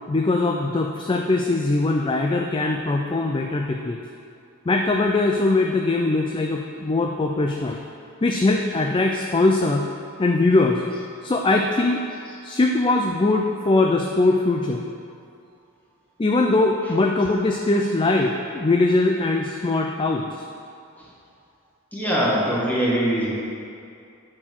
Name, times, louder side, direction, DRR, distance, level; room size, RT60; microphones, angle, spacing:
voice 1, 0.1-4.0 4.7-7.8 8.2-9.9 10.2-14.8 16.2-20.3, left 2 dB, 25° left, 2 dB, 0.4 m, -21 dB
voice 2, 21.9-23.3, equal, 10° left, -7 dB, 1.9 m, -22 dB
10.0 x 4.4 x 6.1 m, 2.5 s
head